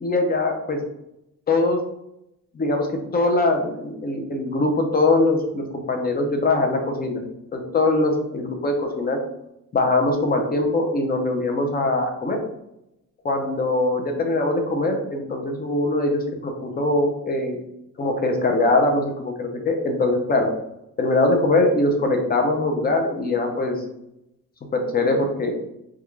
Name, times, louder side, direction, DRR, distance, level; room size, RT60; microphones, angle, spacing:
voice 1, 0.0-0.8 1.5-1.8 2.5-7.3 7.5-9.2 9.7-12.4 13.2-17.6 18.0-20.5 21.0-23.8 24.7-25.5, left 2 dB, 30° left, 3 dB, 0.6 m, -22 dB
3.6 x 2.3 x 3.1 m, 0.84 s
wide cardioid pair, 150°, 32 cm